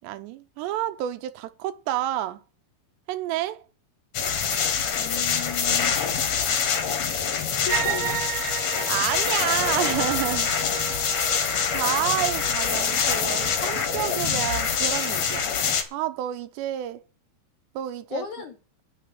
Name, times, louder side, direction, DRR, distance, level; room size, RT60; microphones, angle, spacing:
voice 1, 0.0-2.4 3.1-3.6 8.9-10.5 11.7-15.5 15.9-17.0 17.8-18.2, right 13 dB, 85° right, 3.0 m, -29 dB
sound 1, 4.1-15.8, left 7 dB, 55° left, 2.2 m, -25 dB
voice 2, 5.0-5.9 7.6-8.2 11.1-11.4 18.1-18.6, left 6 dB, 70° left, 1.8 m, -35 dB
sound 2, 7.7-15.3, right 11 dB, 65° right, 2.3 m, -35 dB
9.3 x 7.9 x 8.5 m
omnidirectional pair, 4.8 m